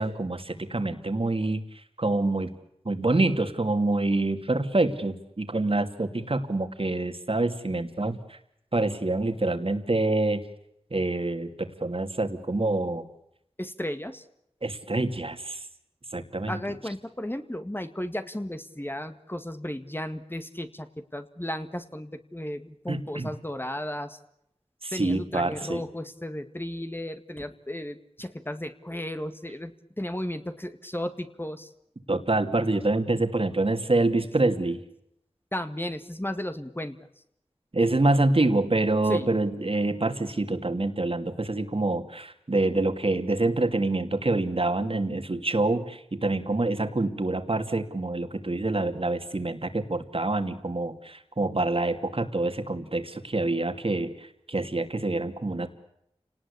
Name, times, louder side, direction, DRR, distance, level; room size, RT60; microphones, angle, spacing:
voice 1, 0.0-2.5 2.8-8.4 8.7-10.4 10.9-13.1 14.6-15.7 16.1-16.6 22.9-23.3 24.8-25.8 32.1-34.8 37.7-55.7, right 2 dB, 55° right, 7 dB, 2.7 m, -26 dB
voice 2, 13.6-14.2 16.5-24.2 24.9-31.7 35.5-37.0 39.1-39.3, left 1 dB, 20° left, 8 dB, 1.9 m, -34 dB
29.5 x 19.0 x 8.6 m, 0.78 s
wide cardioid pair, 50°, 11 cm